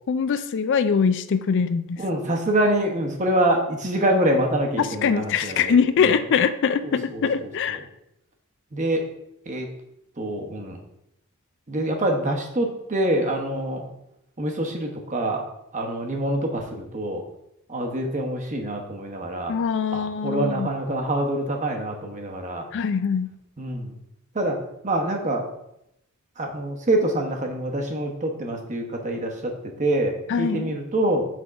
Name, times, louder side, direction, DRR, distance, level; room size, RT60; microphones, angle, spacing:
voice 1, 0.1-2.0 4.8-7.8 19.5-20.7 22.7-23.3 30.3-30.7, left 6 dB, 55° left, 12 dB, 0.4 m, -23 dB
voice 2, 2.0-6.2 6.8-7.5 8.7-9.1 9.5-9.7 10.2-10.8 11.7-13.8 14.4-15.5 15.7-17.2 17.7-19.5 19.9-22.7 23.6-23.9 24.3-24.6 24.8-25.4 26.4-29.5 29.8-31.2, right 1 dB, 35° right, 2 dB, 1.0 m, -25 dB
6.1 x 3.7 x 5.7 m, 0.80 s
head